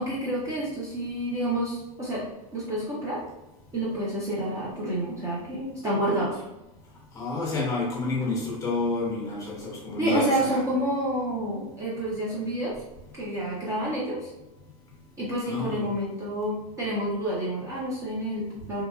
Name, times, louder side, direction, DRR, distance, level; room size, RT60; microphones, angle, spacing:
voice 1, 0.0-2.2 2.5-3.2 3.7-6.4 10.0-12.8 13.1-14.3 15.2-18.8, right 1 dB, 15° right, -6 dB, 0.5 m, -29 dB
voice 2, 7.1-10.6 15.5-15.9, left 3 dB, 15° left, -3 dB, 0.7 m, -29 dB
2.8 x 2.3 x 2.3 m, 0.96 s
supercardioid pair, 155°, 18 cm